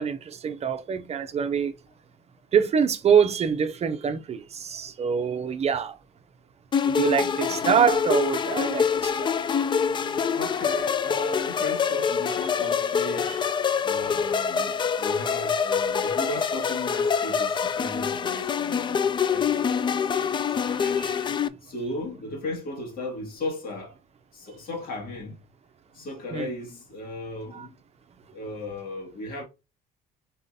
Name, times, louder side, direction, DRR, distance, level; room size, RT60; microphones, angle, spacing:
voice 1, 0.0-1.7 2.5-5.9 6.8-9.3 16.0-16.1 20.8-21.2 26.3-26.5 27.5-27.7, right 7 dB, 40° right, 0.5 m, -25 dB
sound 1, 6.7-21.5, left 6 dB, 30° left, 0.3 m, -25 dB
voice 2, 7.2-7.7 10.0-13.3 13.8-20.3 20.6-21.0 21.6-24.0 24.3-25.4 25.9-27.7 28.3-29.4, left 2 dB, 60° left, 1.9 m, -36 dB
4.1 x 3.7 x 2.7 m
cardioid pair, 110°, 17 cm